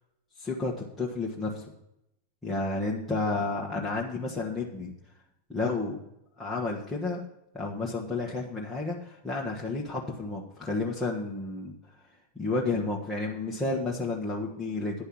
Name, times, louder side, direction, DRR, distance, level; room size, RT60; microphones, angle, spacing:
voice 1, 0.4-0.7 1.0-1.7 2.4-4.9 5.5-6.0 6.4-7.2 7.5-11.7 12.4-15.0, left 3 dB, 10° left, -4 dB, 1.7 m, -31 dB
10.5 x 5.5 x 8.5 m, 0.79 s
figure-of-eight pair, 90°, 0 cm